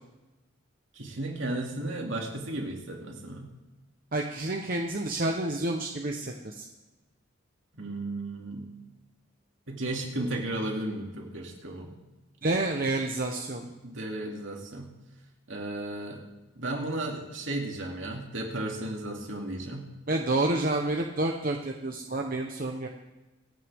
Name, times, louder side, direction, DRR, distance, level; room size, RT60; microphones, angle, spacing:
voice 1, 0.9-3.5 7.8-8.7 9.7-11.9 13.6-14.9 15.5-16.2 16.6-19.9, right 1 dB, 65° right, 0 dB, 2.7 m, -34 dB
voice 2, 4.1-6.6 12.4-13.6 20.1-22.9, right 2 dB, 45° right, 2 dB, 1.0 m, -29 dB
26.5 x 9.3 x 3.6 m, 1.1 s
head